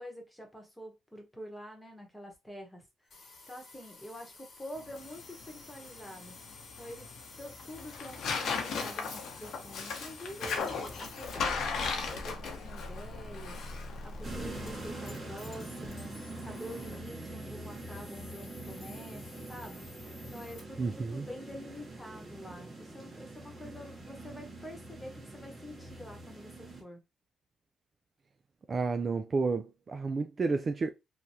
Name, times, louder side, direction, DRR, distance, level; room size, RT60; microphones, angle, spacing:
voice 1, 0.0-2.9 3.5-6.4 6.8-7.1 7.4-19.8 20.3-27.0, equal, 5° left, 1.1 m, -47 dB
sound 1, 3.1-20.6, left 2 dB, 50° left, 1.0 m, -48 dB
Tearing, 4.7-17.0, left 5 dB, 70° left, 0.8 m, -38 dB
sound 2, 14.2-26.8, right 2 dB, 20° right, 1.4 m, -44 dB
voice 2, 20.8-21.3 28.7-30.9, right 4 dB, 35° right, 0.3 m, -31 dB
3.1 x 2.2 x 2.7 m
cardioid pair, 90°, 0 cm